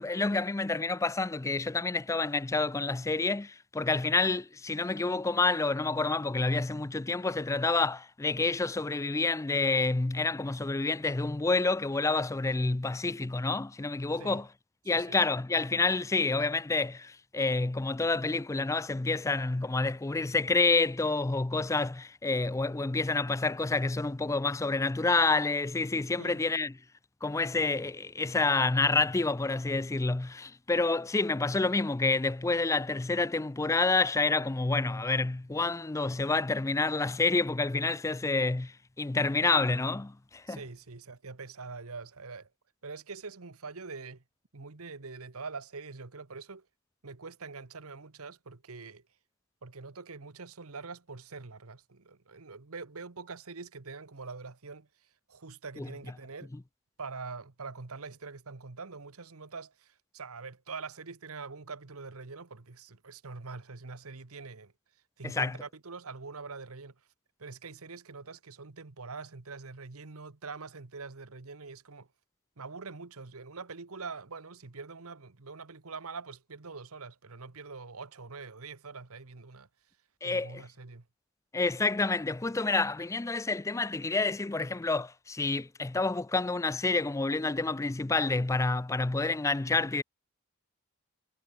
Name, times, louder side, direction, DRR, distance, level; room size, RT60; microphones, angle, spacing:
voice 1, 0.0-14.5 14.9-26.7 27.2-40.6 55.8-55.9 65.2-65.6 80.2-80.6 81.5-90.0, left 3 dB, 15° left, 0.3 m, -28 dB
voice 2, 14.8-15.2 26.2-26.4 40.5-42.5 42.8-44.2 44.5-46.7 47.0-49.0 49.6-54.9 55.3-56.5 57.0-64.7 65.2-66.9 67.4-72.1 72.6-79.7 80.2-81.1, right 4 dB, 75° right, 1.3 m, -44 dB
head